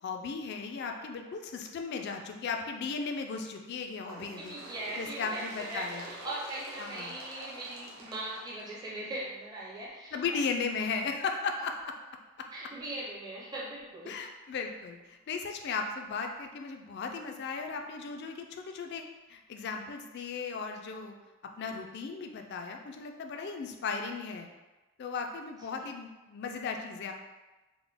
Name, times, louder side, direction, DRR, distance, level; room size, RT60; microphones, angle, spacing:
voice 1, 0.0-4.6 5.0-6.1 6.8-7.2 10.1-11.9 14.1-19.0 19.3-21.1 21.6-24.5 25.0-27.1, left 5 dB, 50° left, 4 dB, 0.3 m, -36 dB
Bird, 4.0-9.4 10.3-10.4 10.8-10.9 11.8-11.9 12.8-12.9 13.8-13.9, right 1 dB, 70° right, 0.7 m, -47 dB
voice 2, 4.4-10.2 10.7-10.9 12.5-14.1, right 1 dB, 20° right, -7 dB, 0.5 m, -40 dB
3.7 x 2.1 x 3.4 m, 1.1 s
head